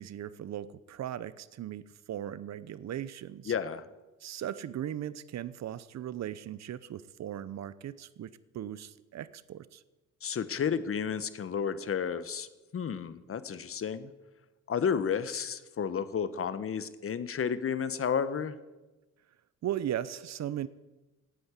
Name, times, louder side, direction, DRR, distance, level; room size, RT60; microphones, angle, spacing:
voice 1, 0.0-3.5 4.2-9.8 19.6-20.7, right 11 dB, 60° right, 17 dB, 0.9 m, -38 dB
voice 2, 3.5-3.9 10.2-12.5 12.7-14.1 14.7-18.5, left 7 dB, 45° left, 14 dB, 1.2 m, -32 dB
17.5 x 9.9 x 8.3 m, 1.1 s
cardioid pair, 90°, 30 cm